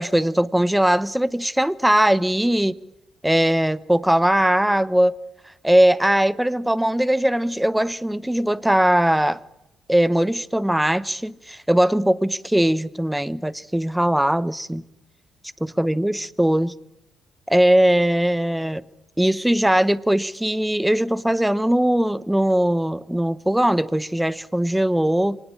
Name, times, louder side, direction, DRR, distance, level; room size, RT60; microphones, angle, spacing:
voice 1, 0.0-2.8 3.2-5.1 5.6-9.4 9.9-14.8 15.6-16.7 17.5-18.8 19.2-25.4, right 1 dB, 5° right, 0.9 m, -20 dB
25.5 x 19.5 x 8.6 m
cardioid pair, 90°, 0 cm